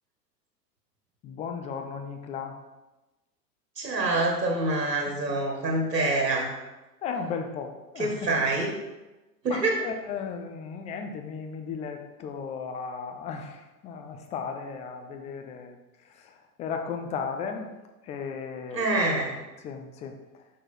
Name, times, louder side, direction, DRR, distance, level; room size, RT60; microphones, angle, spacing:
voice 1, 1.2-2.5 7.0-8.5 9.5-15.8 16.2-16.3 16.6-17.7 18.0-18.8 19.6-20.1, left 6 dB, 15° left, 5 dB, 0.5 m, -35 dB
voice 2, 3.8-6.5 8.0-8.7 9.4-9.8 18.7-19.4, right 2 dB, 80° right, 0 dB, 1.9 m, -26 dB
6.5 x 6.1 x 4.5 m, 1.1 s
figure-of-eight pair, 95°, 49 cm